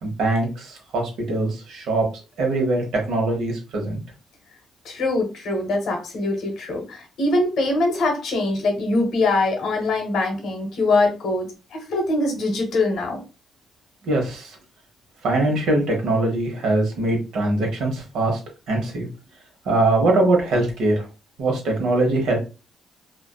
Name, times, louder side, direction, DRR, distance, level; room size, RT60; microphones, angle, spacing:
voice 1, 0.0-2.1 2.4-4.0 14.0-14.6 15.2-18.4 18.7-19.1 19.7-21.0 21.4-22.4, right 2 dB, 80° right, 1 dB, 0.9 m, -22 dB
voice 2, 4.8-13.2, left 2 dB, 70° left, 2 dB, 0.9 m, -23 dB
2.5 x 2.2 x 2.2 m, 0.31 s
cardioid pair, 90°, 0 cm